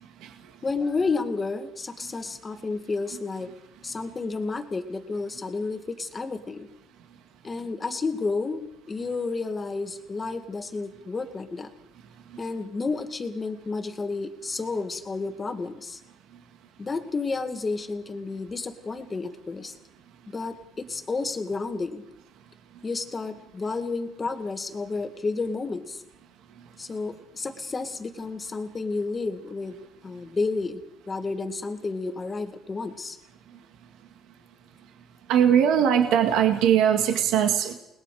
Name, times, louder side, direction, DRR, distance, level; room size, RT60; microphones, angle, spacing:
voice 1, 0.6-3.5 3.8-6.7 7.4-11.7 12.4-16.0 16.8-19.7 20.3-22.0 22.8-26.0 26.8-30.8 31.1-33.2, left 3 dB, 20° left, 6 dB, 2.0 m, -31 dB
voice 2, 35.3-37.7, right 9 dB, 85° right, 5 dB, 2.0 m, -20 dB
29.0 x 20.0 x 5.0 m, 0.88 s
cardioid pair, 140°, 0 cm